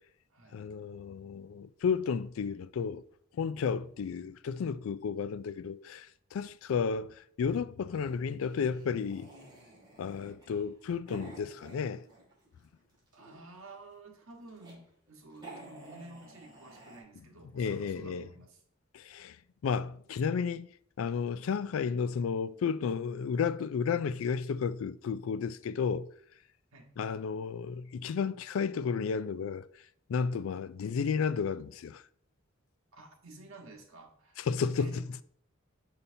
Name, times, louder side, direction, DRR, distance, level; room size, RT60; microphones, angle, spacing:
voice 1, 0.5-3.0 3.4-9.3 10.0-12.0 17.5-18.2 18.9-19.4 19.6-20.7 21.0-26.1 27.0-29.7 30.1-32.0 34.4-35.2, left 6 dB, 75° left, 0.3 m, -32 dB
voice 2, 3.5-3.9 13.1-18.6 26.7-26.9 32.9-34.5 34.8-35.1, right 2 dB, 85° right, 1.4 m, -51 dB
sound 1, 7.9-12.5 12.8-13.7 14.2-14.8 15.1-15.2 15.3-17.0, right 2 dB, 25° right, 2.0 m, -51 dB
6.8 x 5.6 x 2.7 m
head